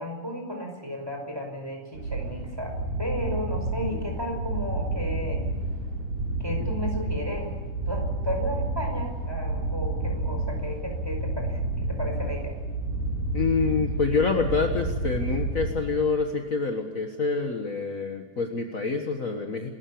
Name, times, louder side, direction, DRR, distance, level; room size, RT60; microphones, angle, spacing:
voice 1, 0.0-2.7 3.0-5.4 6.4-7.5 7.9-12.5, equal, 5° right, 2 dB, 5.1 m, -34 dB
sound 1, 1.9-16.2, right 2 dB, 75° right, 6.6 m, -30 dB
voice 2, 13.3-19.7, left 4 dB, 45° left, 4 dB, 1.0 m, -27 dB
28.0 x 14.0 x 8.6 m, 1.3 s
omnidirectional pair, 3.7 m